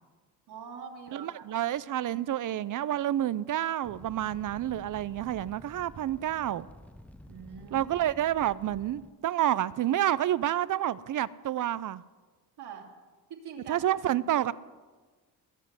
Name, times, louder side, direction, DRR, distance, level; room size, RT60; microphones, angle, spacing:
voice 1, 0.5-1.4 7.3-7.9 12.6-12.9 13.3-13.8 14.1-14.2, right 6 dB, 70° right, 1 dB, 3.0 m, -44 dB
voice 2, 1.1-6.7 7.7-12.0 13.7-14.5, right 12 dB, 50° right, 18 dB, 0.6 m, -29 dB
Fire, 3.8-9.1, left 1 dB, 5° left, 0.5 m, -51 dB
21.0 x 7.5 x 8.1 m, 1.4 s
cardioid pair, 90°, 40 cm